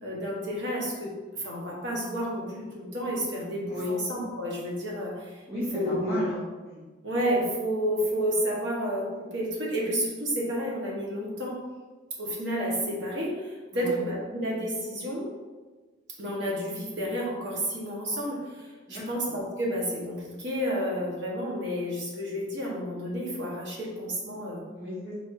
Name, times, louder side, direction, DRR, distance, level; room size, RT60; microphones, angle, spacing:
voice 1, 0.0-5.4 5.7-6.3 7.0-11.6 12.2-15.3 16.2-24.6, equal, 60° right, -3 dB, 1.0 m, -31 dB
voice 2, 5.5-6.8 13.7-14.0 18.9-19.2 24.7-25.1, left 1 dB, 10° right, -14 dB, 1.0 m, -34 dB
4.2 x 3.3 x 2.4 m, 1.3 s
head